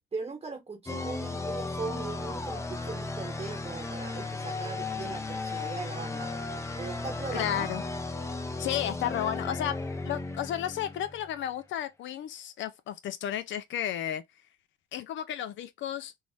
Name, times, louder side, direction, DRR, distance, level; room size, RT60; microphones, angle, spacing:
voice 1, 0.1-6.3 6.8-7.7, right 4 dB, 30° right, 0.9 m, -39 dB
sound 1, 0.9-11.5, left 3 dB, 15° left, 0.5 m, -35 dB
voice 2, 7.3-7.8 8.6-9.7 10.0-14.2 14.9-16.1, left 11 dB, 70° left, 0.5 m, -33 dB
2.7 x 2.0 x 3.1 m
cardioid pair, 90°, 20 cm